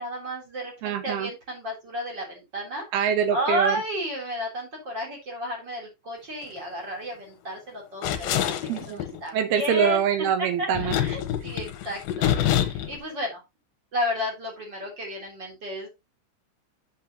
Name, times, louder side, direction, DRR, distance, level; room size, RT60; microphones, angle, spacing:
voice 1, 0.0-2.8 3.3-8.5 8.9-10.0 10.6-10.7 10.9-13.4 13.9-15.9, equal, 25° right, 3.6 m, -32 dB
voice 2, 0.8-1.3 2.9-3.8 8.7-9.0 9.3-11.0, right 9 dB, 70° right, 2.7 m, -24 dB
sound 1, 8.0-9.2 10.7-13.0, left 11 dB, 70° left, 2.4 m, -26 dB
8.3 x 7.6 x 2.9 m
omnidirectional pair, 5.3 m